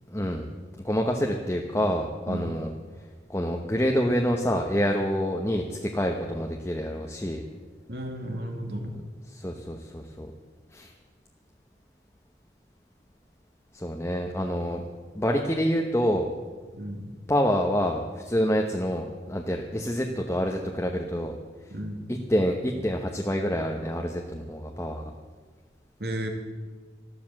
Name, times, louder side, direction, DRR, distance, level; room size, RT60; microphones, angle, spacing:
voice 1, 0.1-0.5 0.8-2.7 3.3-7.4 9.3-10.3 10.7-10.9 13.7-14.8 15.1-16.3 17.3-21.3 22.1-25.1, equal, 15° left, 1 dB, 1.0 m, -27 dB
voice 2, 7.9-8.9 16.7-17.0 21.7-22.1 26.0-26.3, right 1 dB, 60° right, 3 dB, 2.4 m, -33 dB
14.5 x 12.0 x 7.6 m, 1.4 s
head